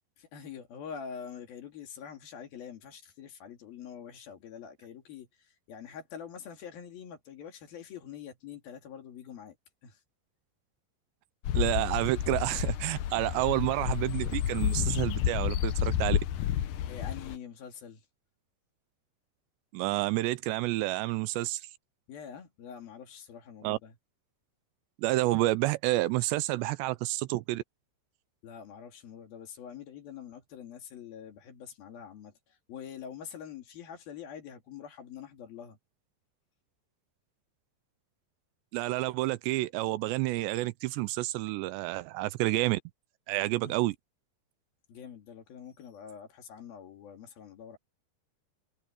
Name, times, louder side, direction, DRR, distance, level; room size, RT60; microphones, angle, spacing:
voice 1, 0.2-9.6 9.8-10.0 16.9-18.1 22.1-24.0 28.4-35.8 43.5-43.8 44.9-47.8, left 8 dB, 60° left, 4.0 m, -45 dB
sound 1, 11.4-17.4, left 11 dB, 85° left, 1.8 m, -30 dB
voice 2, 11.5-16.2 19.7-21.6 23.6-23.8 25.0-27.6 38.7-42.8 43.3-44.0, right 18 dB, 85° right, 2.7 m, -29 dB
omnidirectional pair, 5.1 m